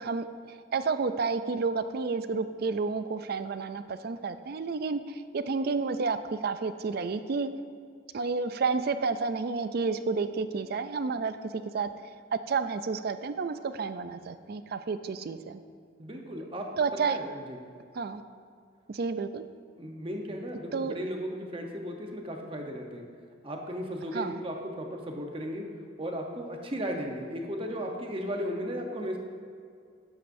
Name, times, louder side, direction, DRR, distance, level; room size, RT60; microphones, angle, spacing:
voice 1, 0.0-6.2 6.4-7.5 8.1-11.9 12.5-15.6 16.8-17.2 18.0-18.2 18.9-19.4 20.7-20.9 24.1-24.4, right 4 dB, 50° right, 11 dB, 0.4 m, -30 dB
voice 2, 16.0-16.7 17.1-17.6 19.8-23.1 23.4-25.6 26.0-29.2, equal, 25° right, 2 dB, 0.9 m, -35 dB
12.0 x 8.7 x 2.6 m, 2.2 s
head